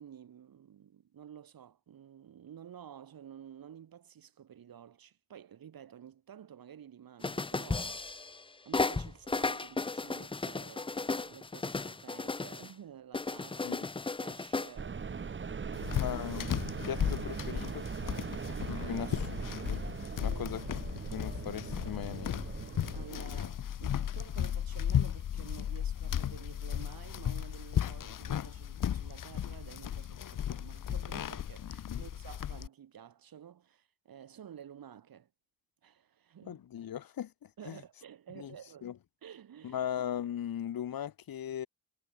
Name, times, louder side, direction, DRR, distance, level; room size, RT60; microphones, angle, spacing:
voice 1, 0.0-8.0 8.6-13.9 14.2-16.1 18.9-19.1 20.2-20.4 22.9-35.3 35.8-36.6 37.6-38.9 39.2-39.8, right 9 dB, 90° right, 4.8 m, -51 dB
sound 1, 7.2-8.4 8.7-12.7 13.1-14.7, left 3 dB, 15° left, 0.7 m, -34 dB
sound 2, 14.8-23.1, right 5 dB, 35° right, 1.8 m, -40 dB
sound 3, 15.7-32.7, left 9 dB, 65° left, 1.4 m, -35 dB
voice 2, 15.9-16.5 16.8-17.8 18.8-19.2 19.5-19.8 20.2-20.6 20.9-22.4 31.9-32.1 36.4-37.8 38.4-38.6 38.8-39.0 39.6-41.7, left 10 dB, 90° left, 2.1 m, -38 dB
wide cardioid pair, 175°, 34 cm